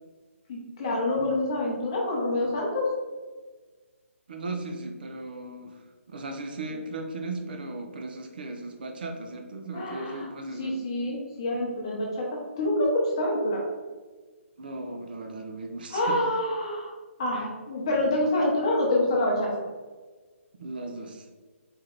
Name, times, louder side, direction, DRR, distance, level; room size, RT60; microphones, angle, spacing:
voice 1, 0.5-2.9 9.7-10.3 10.6-13.6 15.9-16.9 17.2-19.6, left 1 dB, 25° left, -3 dB, 0.8 m, -27 dB
voice 2, 4.3-10.7 14.6-16.2 20.6-21.3, right 2 dB, 40° right, 3 dB, 0.5 m, -37 dB
4.3 x 3.2 x 3.8 m, 1.4 s
hypercardioid pair, 175°, 7 cm